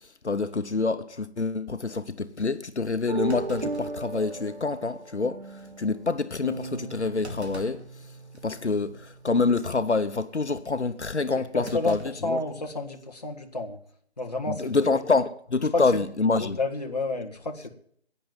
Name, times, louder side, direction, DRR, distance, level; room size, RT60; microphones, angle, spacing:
voice 1, 0.2-7.8 8.4-12.4 14.5-16.6, left 3 dB, 90° left, 1.1 m, -26 dB
Thump thud, 2.4-2.5 3.3-4.6 5.0-5.1 5.6-5.8 7.2-7.9 8.3-8.6 9.4-9.7 11.6-12.9 13.2-13.3 14.4-14.7, equal, 75° right, 3.4 m, -44 dB
sound 1, 3.1-9.6, right 3 dB, 55° right, 0.7 m, -37 dB
voice 2, 11.5-13.8 14.2-14.8 15.7-16.0 16.4-17.7, left 2 dB, 40° left, 1.7 m, -30 dB
11.0 x 9.5 x 7.5 m
figure-of-eight pair, 170°, 33 cm